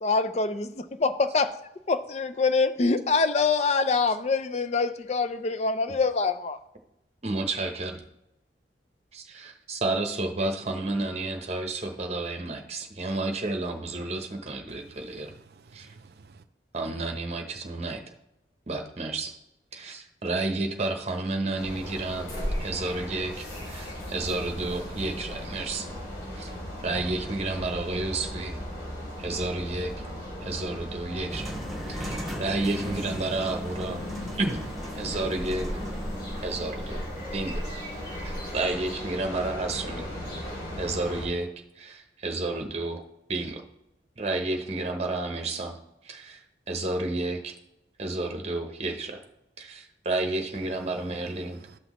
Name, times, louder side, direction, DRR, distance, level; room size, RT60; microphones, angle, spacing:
voice 1, 0.0-1.6 1.9-6.6, left 4 dB, 40° left, 0.5 m, -25 dB
voice 2, 7.2-8.0 9.1-15.3 15.7-15.9 16.7-18.0 18.7-19.3 19.7-22.3 22.6-25.9 26.4-26.5 26.8-28.6 29.2-29.9 30.4-31.6 31.9-34.0 34.4-34.6 35.0-35.7 36.4-37.0 37.3-37.6 38.2-40.1 40.8-41.5 41.8-43.0 43.3-43.6 44.2-45.8 46.0-46.4 46.7-47.5 48.0-49.2 49.6-51.6, right 2 dB, 35° right, 0.9 m, -31 dB
voice 3, 14.7-16.4 51.4-51.8, right 4 dB, 60° right, 0.5 m, -53 dB
sound 1, 21.6-41.3, equal, 55° left, 3.4 m, -36 dB
sound 2, 31.3-38.6, equal, ahead, 1.4 m, -40 dB
12.0 x 5.9 x 3.1 m
head